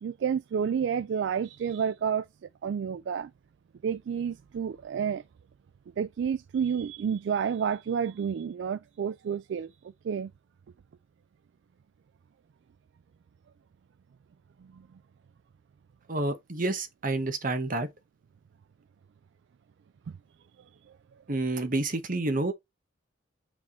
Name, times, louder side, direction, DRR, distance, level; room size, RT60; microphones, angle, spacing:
voice 1, 0.0-2.3 2.6-3.3 3.8-5.2 6.0-9.7 10.0-10.3 14.7-14.8, right 7 dB, 65° right, 0.3 m, -30 dB
voice 2, 16.1-17.9 21.3-22.5, right 2 dB, 45° right, 1.1 m, -29 dB
6.2 x 3.5 x 4.3 m
head